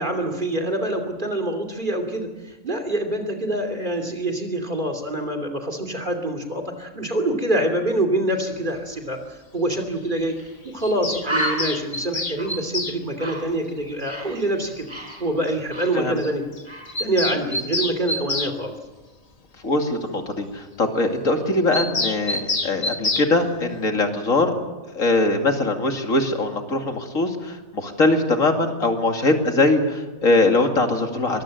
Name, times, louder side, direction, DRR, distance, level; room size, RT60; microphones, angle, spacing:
voice 1, 0.0-10.4 10.6-14.9 15.2-16.4 17.0-18.7, right 1 dB, 35° right, 3 dB, 3.0 m, -25 dB
Bird, 10.4-10.5 10.8-10.9 11.2-14.4 14.7-16.4 16.6-16.9, right 1 dB, 20° right, 4.6 m, -32 dB
Bird vocalization bird call bird song, 10.8-13.0 14.4-14.5 14.7-14.8 15.1-15.2 15.5-15.6 15.8-15.9 16.2-16.3 16.6-18.5 21.7-23.3, left 2 dB, 30° left, 1.4 m, -27 dB
voice 2, 19.6-24.5 24.9-31.4, left 2 dB, 75° left, 4 dB, 2.8 m, -21 dB
23.0 x 21.5 x 7.9 m, 1.2 s
omnidirectional pair, 1.4 m